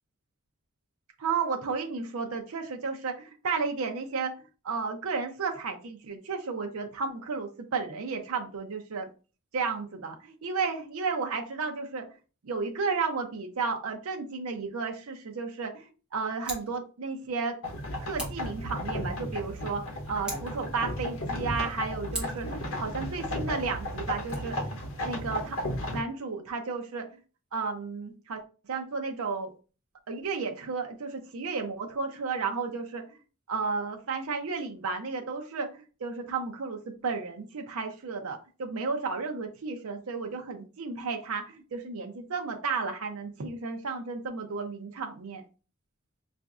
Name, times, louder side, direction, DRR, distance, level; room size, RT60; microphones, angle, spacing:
voice 1, 1.2-4.3 4.6-9.1 9.5-12.0 12.4-17.6 18.0-24.7 25.0-27.1 27.5-29.5 30.1-33.0 33.5-45.4, right 4 dB, 80° right, 4 dB, 0.5 m, -33 dB
Scissors, 16.3-16.7 18.1-18.5 20.2-20.6 22.1-22.5 24.1-24.3, right 1 dB, 5° right, 0.9 m, -39 dB
sound 1, 17.6-26.0, left 1 dB, 70° left, 0.9 m, -34 dB
4.8 x 2.5 x 2.3 m, 0.35 s
head